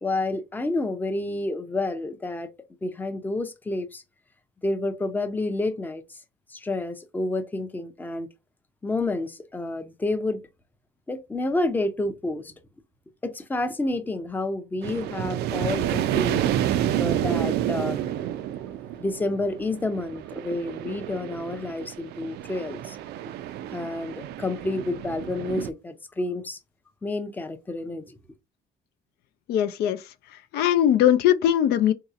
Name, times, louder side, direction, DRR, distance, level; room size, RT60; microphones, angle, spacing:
voice 1, 0.0-2.5 2.8-4.0 4.6-6.0 6.5-8.3 8.8-10.4 11.1-12.5 13.2-16.4 17.0-18.0 19.0-23.0 23.7-26.6 27.0-28.2, left 2 dB, 10° left, 0.5 m, -29 dB
sound 1, 14.8-25.7, right 12 dB, 75° right, 0.4 m, -29 dB
voice 2, 29.5-30.0 30.5-31.9, left 10 dB, 75° left, 0.4 m, -20 dB
3.9 x 2.8 x 2.4 m
cardioid pair, 110°, 17 cm